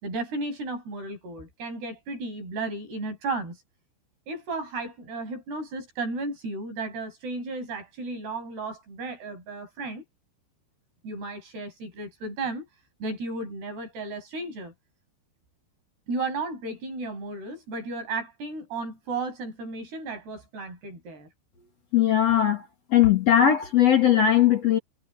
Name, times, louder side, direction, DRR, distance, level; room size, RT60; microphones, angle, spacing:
voice 1, 0.0-3.6 4.3-10.0 11.0-12.7 13.0-14.7 16.1-21.3, right 3 dB, 55° right, 9.6 m, -34 dB
voice 2, 21.9-22.6 22.9-24.8, left 10 dB, 45° left, 2.5 m, -19 dB
omnidirectional pair, 5.5 m